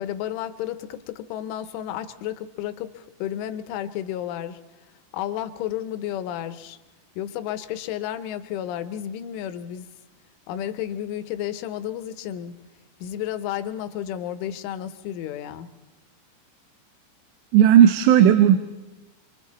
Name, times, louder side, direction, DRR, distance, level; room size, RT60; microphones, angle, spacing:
voice 1, 0.0-4.6 5.1-6.8 7.2-9.9 10.5-12.6 13.0-15.7, left 11 dB, 85° left, 11 dB, 3.4 m, -32 dB
voice 2, 17.5-18.6, right 10 dB, 85° right, 9 dB, 3.3 m, -14 dB
28.0 x 23.5 x 4.2 m, 1.1 s
omnidirectional pair, 5.4 m